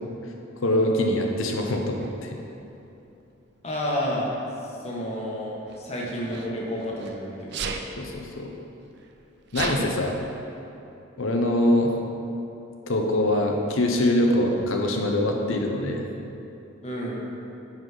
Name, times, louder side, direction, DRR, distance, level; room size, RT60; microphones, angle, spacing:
voice 1, 0.6-2.4 8.0-8.5 9.5-10.1 11.2-11.9 12.9-16.0, left 1 dB, 80° left, 2 dB, 0.8 m, -23 dB
Sneeze, 2.0-2.1 3.3-3.6 5.7-7.1 7.5-7.9 8.6-8.7 8.9-9.9, right 5 dB, 55° right, 0.5 m, -33 dB
voice 2, 3.6-4.3 4.8-7.6 16.8-17.3, equal, 30° left, -4 dB, 1.2 m, -30 dB
9.3 x 4.1 x 4.9 m, 2.8 s
head